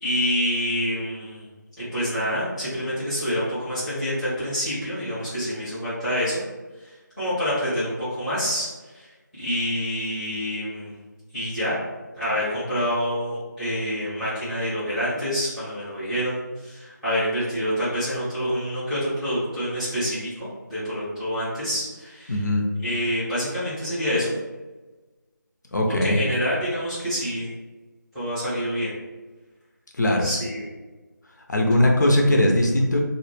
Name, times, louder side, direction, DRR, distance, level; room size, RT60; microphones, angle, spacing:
voice 1, 0.0-1.5 1.8-6.4 6.8-9.1 9.4-10.9 11.3-11.8 12.1-22.4 22.8-24.3 25.9-27.5 28.1-28.9 30.2-30.6, equal, ahead, -16 dB, 0.6 m, -27 dB
voice 2, 22.3-22.6 25.7-26.2 30.0-30.3 31.5-33.0, left 1 dB, 65° left, 0 dB, 0.5 m, -20 dB
2.0 x 2.0 x 3.1 m, 1.2 s
figure-of-eight pair, 165°, 10 cm